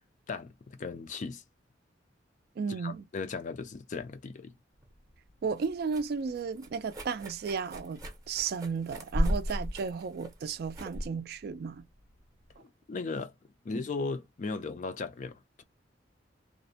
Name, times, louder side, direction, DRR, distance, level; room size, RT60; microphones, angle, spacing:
voice 1, 0.3-1.4 2.7-4.5 12.6-13.3 13.6-15.6, left 4 dB, 45° left, 0.4 m, -37 dB
voice 2, 2.6-3.0 5.4-8.0 8.3-11.9, right 5 dB, 55° right, 0.3 m, -34 dB
sound 1, 4.8-12.6, equal, 20° right, 0.6 m, -36 dB
2.5 x 2.1 x 2.7 m
head